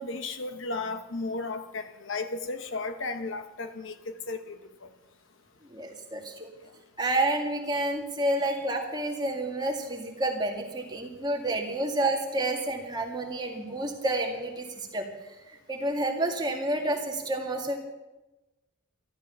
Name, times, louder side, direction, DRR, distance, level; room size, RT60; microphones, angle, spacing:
voice 1, 0.0-4.6, left 3 dB, 60° left, 9 dB, 0.9 m, -34 dB
voice 2, 5.7-6.5 7.0-15.1 15.7-17.8, right 1 dB, 20° right, 1 dB, 2.0 m, -29 dB
13.5 x 13.0 x 6.9 m, 1.1 s
head